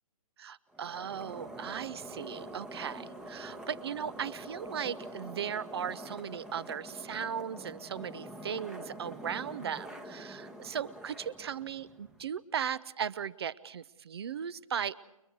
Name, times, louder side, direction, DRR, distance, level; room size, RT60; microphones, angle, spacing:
voice 1, 0.4-15.0, right 8 dB, 45° right, 20 dB, 0.7 m, -37 dB
sound 1, 0.7-12.3, right 1 dB, 5° right, 1.0 m, -46 dB
29.5 x 22.5 x 4.7 m, 0.89 s
figure-of-eight pair, 135°, 18 cm